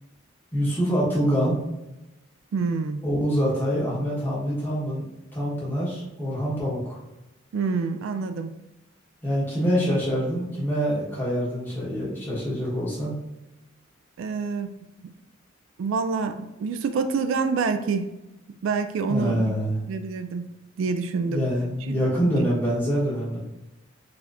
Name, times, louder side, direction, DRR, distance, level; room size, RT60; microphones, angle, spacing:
voice 1, 0.5-1.6 3.0-5.0 5.3-7.0 9.2-13.1 19.1-19.8 21.3-23.4, equal, 10° left, -8 dB, 1.1 m, -25 dB
voice 2, 2.5-3.0 7.5-8.5 14.2-14.7 15.8-18.1 18.6-19.6 19.9-20.5 20.8-21.4 21.9-22.0, right 4 dB, 80° right, 9 dB, 0.3 m, -27 dB
3.9 x 2.8 x 2.4 m, 0.95 s
head